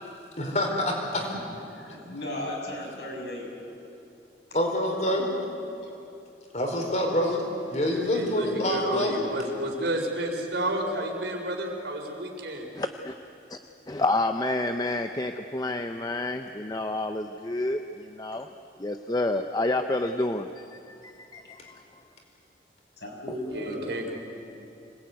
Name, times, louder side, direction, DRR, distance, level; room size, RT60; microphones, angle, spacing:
voice 1, 0.4-1.3 4.5-5.3 6.5-9.2, left 1 dB, 40° left, 1 dB, 4.4 m, -26 dB
voice 2, 1.7-3.5 23.0-23.9, left 1 dB, 75° left, -1 dB, 6.8 m, -35 dB
voice 3, 7.9-12.7 23.5-24.1, right 1 dB, 80° right, 2 dB, 4.2 m, -31 dB
voice 4, 12.8-13.1 13.5-13.6 13.9-18.5 18.8-22.0, left 2 dB, 20° left, 7 dB, 0.6 m, -29 dB
26.0 x 19.0 x 9.5 m, 2.8 s
head